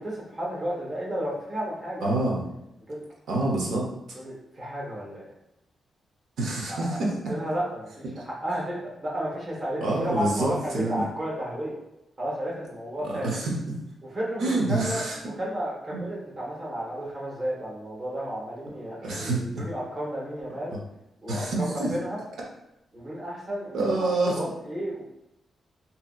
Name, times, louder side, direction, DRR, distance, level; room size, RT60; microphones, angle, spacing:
voice 1, 0.0-2.2 2.9-3.0 4.1-5.3 6.7-7.0 7.3-11.7 12.2-13.3 14.0-20.8 21.2-22.2 22.9-25.0, equal, 30° right, -5 dB, 0.9 m, -33 dB
voice 2, 2.0-2.4 3.3-3.8 6.4-7.1 9.8-11.0 13.0-13.7 14.4-15.2 15.9-16.0 19.0-19.6 21.3-21.9 23.7-24.4, right 2 dB, 85° right, -2 dB, 0.7 m, -27 dB
2.7 x 2.7 x 2.3 m, 0.84 s
wide cardioid pair, 155°, 0 cm